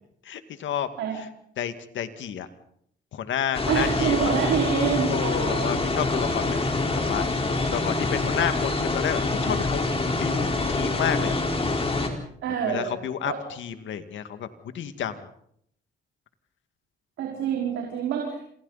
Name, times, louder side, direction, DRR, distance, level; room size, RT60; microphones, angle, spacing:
voice 1, 0.3-0.9 1.6-2.5 3.1-4.2 5.1-9.9 10.2-11.3 12.7-14.5 14.7-15.3, left 9 dB, 70° left, 9 dB, 2.1 m, -30 dB
sound 1, 3.5-12.1, left 2 dB, 30° left, 4.5 m, -26 dB
voice 2, 3.7-5.9 12.4-12.9 13.3-13.4 17.2-18.4, right 7 dB, 80° right, -1 dB, 5.1 m, -26 dB
27.5 x 27.5 x 4.2 m, 0.68 s
cardioid pair, 90°, 20 cm